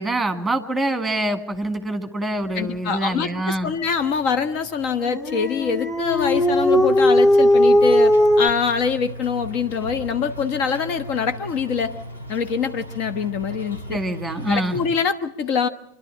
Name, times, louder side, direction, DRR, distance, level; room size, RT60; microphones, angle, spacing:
voice 1, 0.0-3.7 13.9-14.8, right 1 dB, 5° right, 8 dB, 2.1 m, -25 dB
voice 2, 2.5-11.9 12.3-14.0 14.5-15.7, left 6 dB, 40° left, 10 dB, 1.2 m, -24 dB
Dog, 5.0-8.5, left 1 dB, 25° left, 2.2 m, -17 dB
sound 1, 6.0-14.9, equal, 75° left, 3.7 m, -37 dB
27.0 x 11.5 x 8.7 m, 0.85 s
figure-of-eight pair, 90°, 0 cm